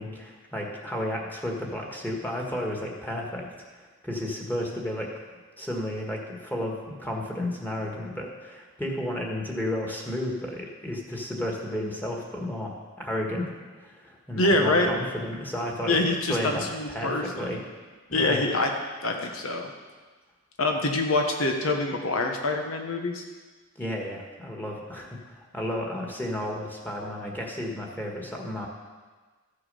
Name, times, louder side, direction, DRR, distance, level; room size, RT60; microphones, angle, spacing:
voice 1, 0.0-5.1 5.6-16.0 16.3-17.6 18.1-18.4 23.8-28.7, left 1 dB, 10° left, -1 dB, 1.6 m, -32 dB
voice 2, 14.3-14.9 15.9-17.5 18.1-18.7 19.0-19.7 20.6-23.2, left 2 dB, 85° left, 3 dB, 1.3 m, -25 dB
14.0 x 6.8 x 5.6 m, 1.4 s
head